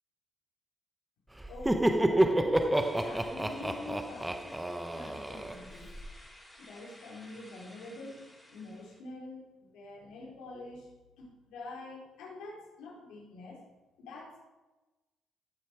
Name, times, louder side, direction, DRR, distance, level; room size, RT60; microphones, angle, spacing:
voice 1, 1.4-5.9 6.6-10.9 11.2-13.6 14.0-14.4, left 2 dB, 85° left, -3 dB, 4.1 m, -46 dB
Laughter, 1.4-6.1, right 1 dB, 10° right, 0.8 m, -29 dB
sound 1, 2.7-9.0, left 1 dB, 10° left, 3.4 m, -55 dB
15.0 x 6.6 x 4.7 m, 1.1 s
cardioid pair, 90°, 0 cm